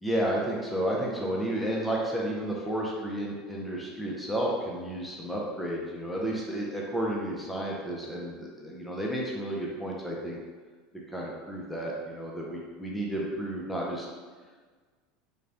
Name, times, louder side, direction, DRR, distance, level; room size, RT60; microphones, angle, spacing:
voice 1, 0.0-10.4 11.1-14.1, right 1 dB, 5° left, -3 dB, 0.5 m, -32 dB
3.8 x 2.2 x 3.4 m, 1.5 s
supercardioid pair, 145°, 0 cm